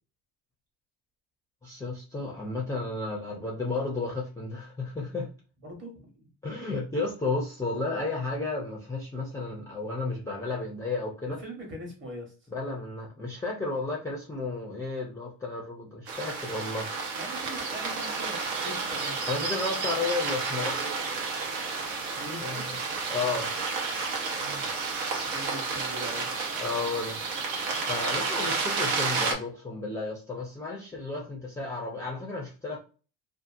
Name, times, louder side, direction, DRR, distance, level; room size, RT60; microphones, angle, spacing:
voice 1, 1.6-5.3 6.4-11.4 12.5-16.9 19.3-21.0 22.4-22.6 23.1-23.5 26.6-27.2 27.9-32.8, left 3 dB, 10° left, -1 dB, 0.4 m, -33 dB
voice 2, 5.6-6.3 11.2-12.3 17.2-19.3 22.2-22.8 24.3-24.6 25.2-26.3, right 1 dB, 30° right, 1 dB, 1.1 m, -42 dB
sound 1, 16.1-29.3, right 4 dB, 80° right, 1.0 m, -31 dB
2.7 x 2.4 x 2.5 m, 0.36 s
cardioid pair, 135°, 37 cm